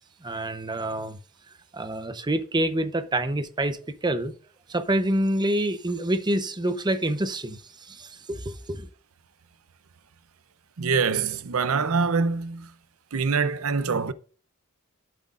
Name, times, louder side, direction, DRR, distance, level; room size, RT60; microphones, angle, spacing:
voice 1, 0.2-1.2 1.7-4.3 4.7-8.9, right 1 dB, 20° right, 0.7 m, -27 dB
voice 2, 10.8-12.7 13.1-14.1, right 5 dB, 70° right, 0.6 m, -24 dB
12.0 x 7.9 x 2.5 m
head